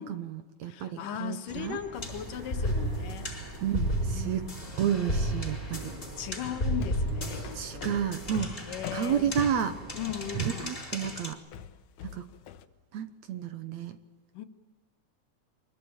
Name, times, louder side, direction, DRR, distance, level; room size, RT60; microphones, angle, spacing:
voice 1, 0.0-1.8 3.6-4.5 4.8-6.0 7.5-8.6 8.9-9.8 10.3-11.4 12.0-12.3 12.9-14.0, right 9 dB, 65° right, 9 dB, 2.1 m, -31 dB
voice 2, 0.6-3.4 4.1-4.7 6.2-8.0 8.6-9.3 9.9-10.7 14.3-14.5, left 10 dB, 90° left, 7 dB, 3.1 m, -38 dB
sound 1, 1.5-10.4, right 1 dB, 15° right, 0.8 m, -46 dB
sound 2, 1.9-11.3, equal, 15° left, 4.3 m, -34 dB
sound 3, 6.4-12.6, left 9 dB, 75° left, 2.4 m, -41 dB
24.5 x 22.0 x 9.0 m, 1.2 s
omnidirectional pair, 3.7 m